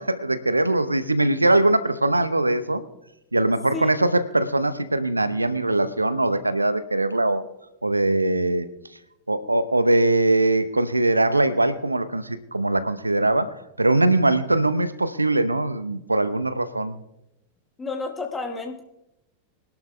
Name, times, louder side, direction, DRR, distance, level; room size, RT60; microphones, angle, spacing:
voice 1, 0.0-2.8 3.3-7.4 7.8-8.7 9.3-17.0, right 2 dB, 85° right, 13 dB, 0.7 m, -21 dB
voice 2, 17.8-18.8, left 3 dB, 15° left, 2 dB, 1.4 m, -31 dB
24.0 x 11.5 x 2.2 m, 0.89 s
figure-of-eight pair, 90°, 0 cm